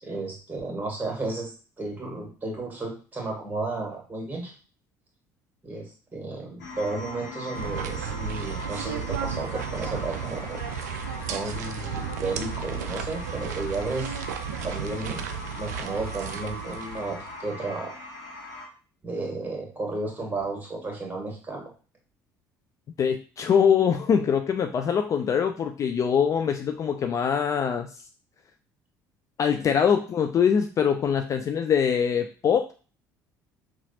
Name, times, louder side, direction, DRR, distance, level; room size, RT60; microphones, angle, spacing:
voice 1, 0.0-4.5 5.6-10.6 11.3-14.2 14.6-15.2 15.6-17.9 19.0-21.7, right 3 dB, 20° right, 0 dB, 1.7 m, -33 dB
sound 1, 6.6-18.7, left 2 dB, 75° left, 1.0 m, -40 dB
sound 2, 7.5-17.5, right 7 dB, 70° right, 0.4 m, -34 dB
voice 2, 23.0-27.9 29.4-32.7, left 7 dB, 35° left, 6 dB, 0.4 m, -23 dB
5.6 x 2.4 x 2.8 m, 0.36 s
figure-of-eight pair, 55°, 9 cm